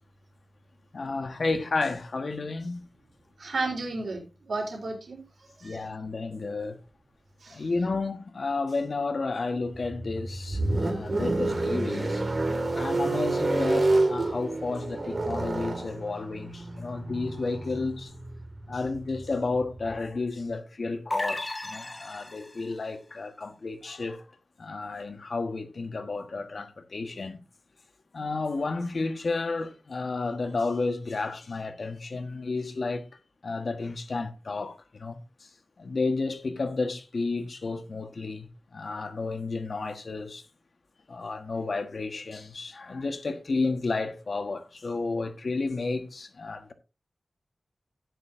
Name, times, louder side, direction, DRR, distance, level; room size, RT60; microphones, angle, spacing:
voice 1, 0.9-2.8 5.6-6.8 7.5-12.2 12.7-18.1 18.7-24.2 24.6-27.4 28.1-33.1 33.4-35.2 35.8-40.4 41.1-46.7, left 3 dB, 60° left, 1.4 m, -32 dB
voice 2, 3.4-5.9 7.4-7.6, right 3 dB, 85° right, 3.7 m, -34 dB
sound 1, 9.7-20.0, right 2 dB, 50° right, 2.1 m, -29 dB
sound 2, 21.1-22.7, left 2 dB, 25° left, 0.7 m, -33 dB
12.5 x 9.6 x 2.7 m
wide cardioid pair, 110°, 0 cm